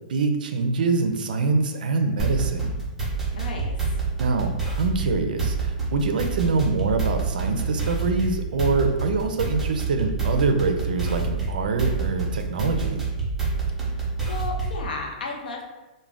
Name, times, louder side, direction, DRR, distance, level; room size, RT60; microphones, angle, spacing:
voice 1, 0.1-2.8 4.2-13.0, right 4 dB, 75° right, 6 dB, 0.4 m, -25 dB
sound 1, 2.2-14.9, right 4 dB, 5° right, 0.5 m, -27 dB
voice 2, 3.3-3.8 13.8-15.6, left 3 dB, 80° left, 1 dB, 0.5 m, -34 dB
2.4 x 2.1 x 3.2 m, 1.1 s
hypercardioid pair, 160°, 5 cm